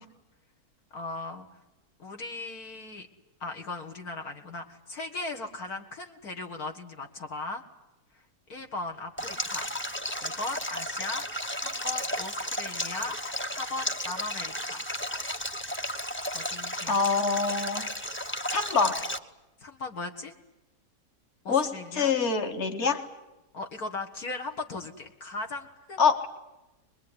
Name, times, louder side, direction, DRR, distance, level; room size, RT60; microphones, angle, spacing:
voice 1, 0.9-1.5 2.0-3.1 3.4-7.6 8.1-8.2 8.5-9.7 10.2-11.2 11.6-13.2 13.5-14.8 16.3-17.0 19.6-20.3 21.4-22.1 23.5-26.0, left 3 dB, 65° left, 4 dB, 2.1 m, -38 dB
Stream, 9.2-19.2, equal, 10° left, 0.9 m, -34 dB
voice 2, 16.9-17.9 18.5-19.0 21.5-23.0 26.0-26.3, left 5 dB, 45° left, 6 dB, 2.1 m, -25 dB
24.5 x 21.5 x 9.8 m, 1.0 s
omnidirectional pair, 1.7 m